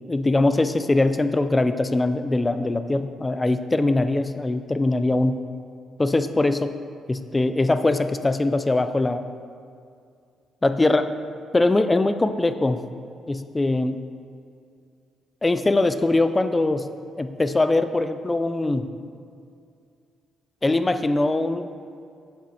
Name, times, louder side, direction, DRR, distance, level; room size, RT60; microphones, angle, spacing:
voice 1, 0.1-5.4 6.0-6.7 7.1-9.2 10.6-11.1 11.5-12.8 13.3-14.0 15.4-16.9 17.2-18.9 20.6-21.7, left 2 dB, 20° left, 10 dB, 0.4 m, -22 dB
8.0 x 6.1 x 4.3 m, 2.4 s
cardioid pair, 90°, 0 cm